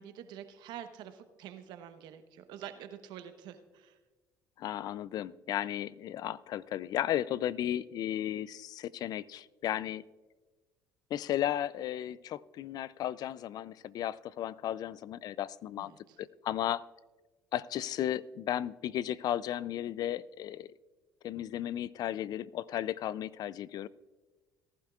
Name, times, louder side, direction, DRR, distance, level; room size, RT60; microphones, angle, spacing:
voice 1, 0.0-4.0 15.8-16.2, right 10 dB, 70° right, 9 dB, 1.0 m, -47 dB
voice 2, 4.6-10.0 11.1-15.9 16.2-16.8 17.5-20.7 21.2-23.9, left 11 dB, 55° left, 20 dB, 0.3 m, -34 dB
19.0 x 11.0 x 2.4 m, 1.3 s
supercardioid pair, 70°, 8 cm